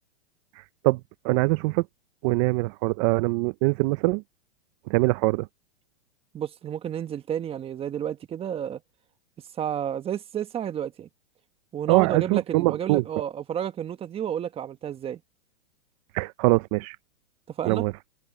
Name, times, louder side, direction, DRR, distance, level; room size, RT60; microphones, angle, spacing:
voice 1, 0.6-1.9 2.2-4.2 4.9-5.5 11.9-13.0 16.1-17.0 17.7-17.9, right 24 dB, 35° right, 0.5 m, -23 dB
voice 2, 6.3-8.8 9.6-11.1 11.7-15.2 17.6-17.8, right 9 dB, 15° right, 1.1 m, -31 dB
hypercardioid pair, 140°, 32 cm